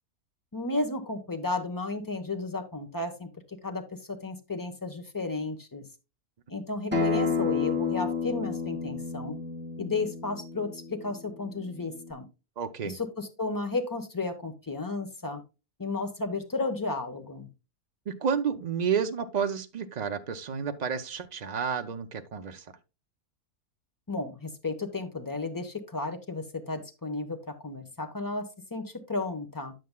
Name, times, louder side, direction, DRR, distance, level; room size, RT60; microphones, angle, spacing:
voice 1, 0.5-5.8 6.5-9.4 9.8-12.3 12.8-15.4 15.8-17.5 24.1-29.7, left 3 dB, 15° left, 0.8 m, -33 dB
Acoustic guitar, 6.9-12.1, left 5 dB, 5° right, 1.7 m, -31 dB
voice 2, 12.6-13.0 18.1-22.6, right 7 dB, 55° right, 0.4 m, -30 dB
9.3 x 7.7 x 2.2 m
omnidirectional pair, 1.5 m